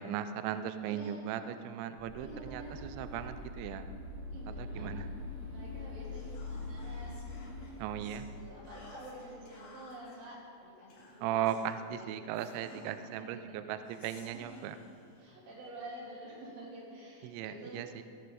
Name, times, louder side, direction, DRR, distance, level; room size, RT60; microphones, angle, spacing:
voice 1, 0.0-3.9 4.5-5.1 7.8-8.3 11.2-14.8 17.2-18.0, right 10 dB, 85° right, 10 dB, 2.6 m, -37 dB
voice 2, 0.9-1.2 2.2-2.8 4.3-5.1 5.5-7.3 8.0-11.5 12.0-12.1 12.4-12.8 13.3-13.4 14.0-14.6 15.2-18.0, right 1 dB, 70° right, -6 dB, 5.3 m, -49 dB
sound 1, 2.0-9.4, left 2 dB, 20° right, 1.6 m, -44 dB
Whispering, 6.1-8.2 8.7-10.2 10.9-11.7 12.3-13.2 13.8-15.7, left 3 dB, 65° left, 3.7 m, -59 dB
16.5 x 9.6 x 3.9 m, 2.5 s
omnidirectional pair, 5.8 m